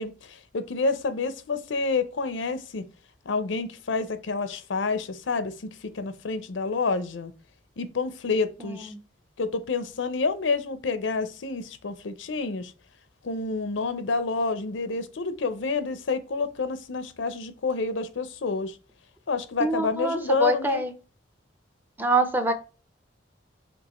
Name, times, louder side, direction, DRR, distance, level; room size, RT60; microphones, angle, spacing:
voice 1, 0.0-2.8 3.3-7.3 7.8-8.9 9.4-12.7 13.2-18.8 19.3-20.8, left 4 dB, 85° left, 0.6 m, -28 dB
voice 2, 8.7-9.0 19.6-20.9 22.0-22.5, right 2 dB, 10° right, 0.5 m, -25 dB
5.2 x 3.4 x 3.0 m
head